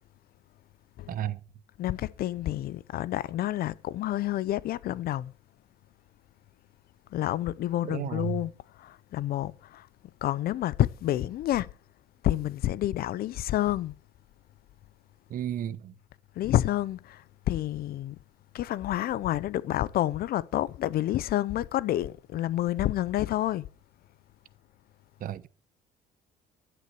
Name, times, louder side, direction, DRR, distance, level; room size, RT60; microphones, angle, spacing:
voice 1, 1.1-1.4 7.9-8.4 15.3-15.9 25.2-25.5, right 10 dB, 55° right, 1.0 m, -33 dB
voice 2, 1.8-5.3 7.1-9.9 10.2-11.7 12.2-13.9 16.4-18.2 18.5-23.7, left 13 dB, 65° left, 0.7 m, -29 dB
11.0 x 9.6 x 4.8 m
cardioid pair, 110°, 17 cm